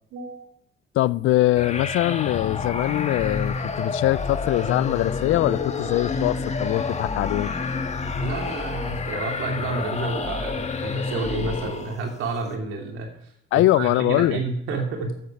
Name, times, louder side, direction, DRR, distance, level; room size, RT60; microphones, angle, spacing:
voice 1, 0.1-0.5 8.2-13.1 13.5-15.1, right 3 dB, 90° right, 2.7 m, -30 dB
voice 2, 0.9-7.6 13.5-14.4, left 15 dB, 80° left, 0.4 m, -22 dB
sound 1, 1.6-12.1, left 4 dB, 35° left, 1.6 m, -29 dB
12.0 x 8.4 x 5.9 m
cardioid pair, 90°, 20 cm